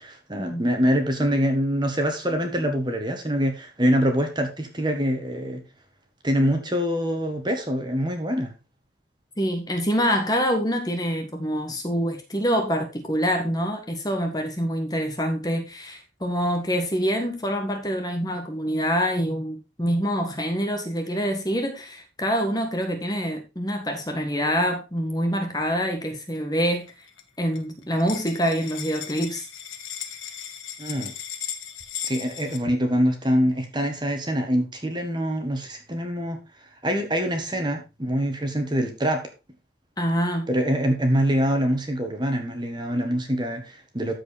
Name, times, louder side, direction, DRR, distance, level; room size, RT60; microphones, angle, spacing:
voice 1, 0.0-5.6 6.2-8.5 30.8-31.1 32.0-36.4 36.8-39.2 40.5-44.1, equal, 20° right, 1.6 m, -24 dB
voice 2, 9.4-26.9 27.4-29.5 40.0-40.5, equal, 20° left, 1.7 m, -26 dB
sound 1, 26.7-27.2 27.5-27.6 27.8-32.6, left 9 dB, 90° left, 1.5 m, -36 dB
13.5 x 5.0 x 4.2 m
head